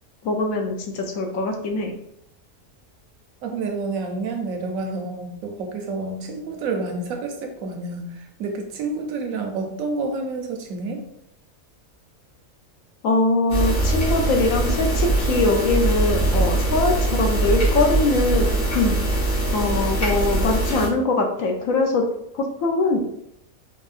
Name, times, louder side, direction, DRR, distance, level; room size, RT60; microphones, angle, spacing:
voice 1, 0.2-1.9 13.0-18.5 18.7-19.0 19.5-22.0 22.4-23.0, left 2 dB, 70° left, 3 dB, 1.0 m, -22 dB
voice 2, 3.4-11.0, right 3 dB, 75° right, 3 dB, 1.1 m, -29 dB
sound 1, 13.5-20.9, right 2 dB, 55° left, 1.6 m, -22 dB
4.4 x 3.0 x 2.4 m, 0.75 s
omnidirectional pair, 1.5 m